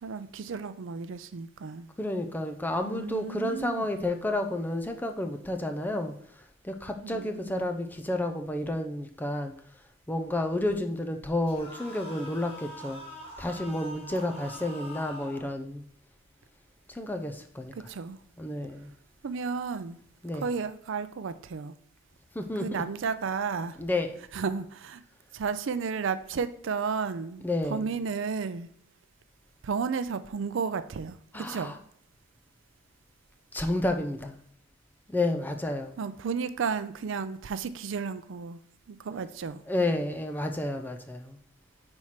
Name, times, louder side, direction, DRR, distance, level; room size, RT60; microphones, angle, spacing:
voice 1, 0.0-1.9 2.8-3.9 7.0-7.7 17.7-18.2 19.2-20.0 20.3-21.7 22.6-23.8 24.3-25.0 25.3-28.7 29.6-31.7 36.0-38.6 38.9-39.6, right 5 dB, 65° right, 0.4 m, -33 dB
voice 2, 2.0-6.1 6.6-9.5 10.1-13.0 13.4-15.8 16.9-17.7 18.4-18.9 20.2-20.4 22.3-22.8 23.8-24.1 27.4-27.8 31.3-31.8 33.5-34.4 35.1-36.0 39.7-41.4, left 1 dB, 10° left, 0.5 m, -31 dB
sound 1, 11.5-15.5, left 1 dB, 30° left, 1.5 m, -44 dB
4.6 x 4.4 x 5.7 m
head